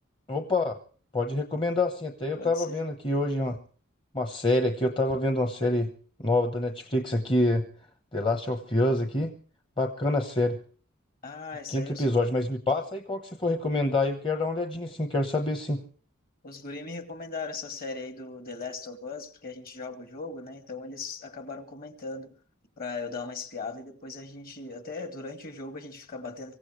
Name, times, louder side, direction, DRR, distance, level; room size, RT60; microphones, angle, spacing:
voice 1, 0.3-0.7 1.1-3.6 4.1-5.9 6.2-7.6 8.1-9.3 9.8-10.6 11.7-15.8, left 2 dB, 25° left, 1.1 m, -26 dB
voice 2, 2.4-2.8 11.2-12.1 16.4-22.3 22.8-26.6, left 4 dB, 45° left, 2.3 m, -38 dB
25.0 x 16.0 x 3.2 m
head